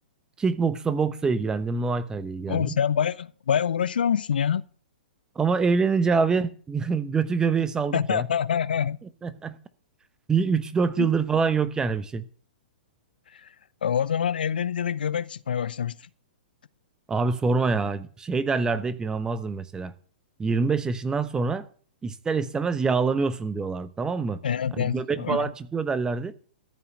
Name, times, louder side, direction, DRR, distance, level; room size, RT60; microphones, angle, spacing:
voice 1, 0.4-2.7 5.4-8.3 9.2-9.6 10.3-12.3 17.1-19.9 20.4-21.7 22.0-24.4 24.7-26.3, right 4 dB, 15° right, 0.9 m, -25 dB
voice 2, 2.5-4.6 7.9-9.0 11.0-11.1 13.3-13.5 13.8-16.0 24.4-25.5, left 8 dB, 75° left, 0.5 m, -26 dB
14.0 x 5.7 x 8.2 m
hypercardioid pair, 115°, 5 cm